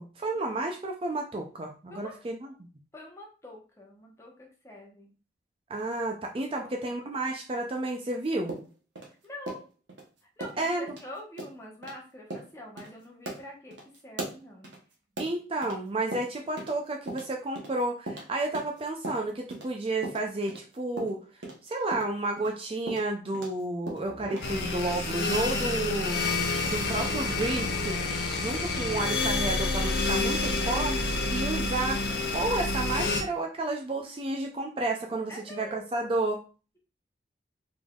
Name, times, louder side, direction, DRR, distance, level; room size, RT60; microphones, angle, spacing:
voice 1, 0.0-2.5 5.7-8.6 10.6-10.9 15.2-21.2 21.6-26.2 26.7-28.0 28.3-36.4, right 2 dB, 30° right, 2 dB, 0.4 m, -31 dB
voice 2, 2.9-5.1 6.6-7.0 9.1-9.6 10.4-14.7 35.3-36.1, left 1 dB, 15° left, -1 dB, 0.9 m, -46 dB
sound 1, 8.5-10.0 10.4-10.6 10.9-11.0 11.4-11.5 11.8-12.0 12.3-12.5 12.8-12.9 13.3-15.8 16.1-16.8 17.1-19.7 20.0-23.6 23.9-24.5, right 2 dB, 85° right, 0.9 m, -39 dB
sound 2, 24.0-30.9, right 3 dB, 60° right, 0.7 m, -42 dB
sound 3, 24.4-33.2, left 3 dB, 65° left, 0.5 m, -29 dB
3.8 x 3.4 x 2.3 m, 0.35 s
head